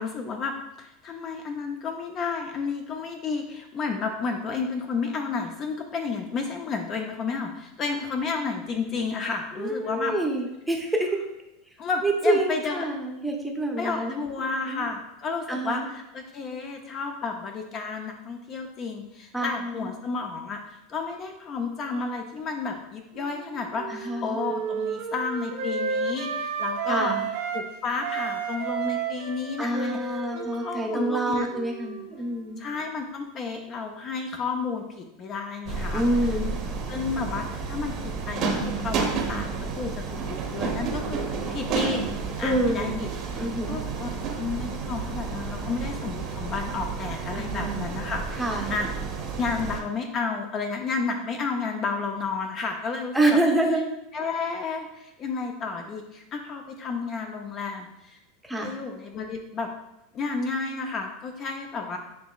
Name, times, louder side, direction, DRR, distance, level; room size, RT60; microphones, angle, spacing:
voice 1, 0.0-10.2 11.8-12.9 13.8-27.2 27.5-31.5 32.6-36.0 36.9-41.2 41.5-42.0 42.4-48.4 48.7-48.9 49.4-53.4 54.1-58.2 58.6-59.7 60.1-62.0, left 4 dB, 35° left, 4 dB, 0.5 m, -32 dB
voice 2, 9.6-11.2 12.0-14.2 14.6-14.8 15.5-15.9 19.3-19.9 23.9-24.4 26.9-27.2 29.6-32.6 35.9-36.6 42.4-43.0 43.4-43.8 47.3-47.8 48.4-48.7 53.1-53.9 58.4-58.7, right 1 dB, 5° right, 0 dB, 0.7 m, -27 dB
Wind instrument woodwind instrument, 23.1-27.7 28.0-32.5, right 6 dB, 75° right, 0.8 m, -32 dB
sound 1, 35.7-49.8, right 4 dB, 45° right, 0.8 m, -31 dB
7.3 x 2.9 x 2.4 m, 0.90 s
supercardioid pair, 135°, 0 cm